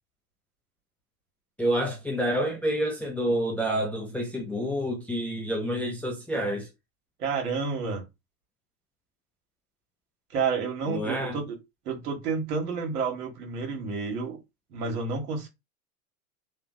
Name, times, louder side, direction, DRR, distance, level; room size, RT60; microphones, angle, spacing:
voice 1, 1.6-6.7 10.9-11.4, equal, 5° left, 0.3 m, -28 dB
voice 2, 7.2-8.0 10.3-11.4 11.8-14.4 14.7-15.5, right 5 dB, 80° right, 1.5 m, -30 dB
3.1 x 2.3 x 2.5 m
hypercardioid pair, 105°, 45 cm